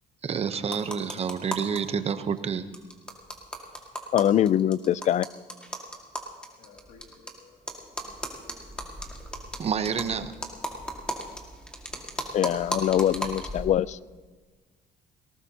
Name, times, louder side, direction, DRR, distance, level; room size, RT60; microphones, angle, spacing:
voice 1, 0.2-2.7 9.6-10.4, right 7 dB, 40° right, 11 dB, 0.8 m, -29 dB
sound 1, 0.7-1.8 2.1-2.2 2.4-2.5 2.7-7.3 7.7-13.7, equal, 5° left, 1.9 m, -36 dB
voice 2, 4.1-5.3 12.3-14.0, left 11 dB, 45° left, 20 dB, 0.4 m, -23 dB
voice 3, 6.6-8.1 8.4-8.6, left 5 dB, 85° left, 0 dB, 2.5 m, -56 dB
18.5 x 18.5 x 2.9 m, 1.3 s
cardioid pair, 110°, 17 cm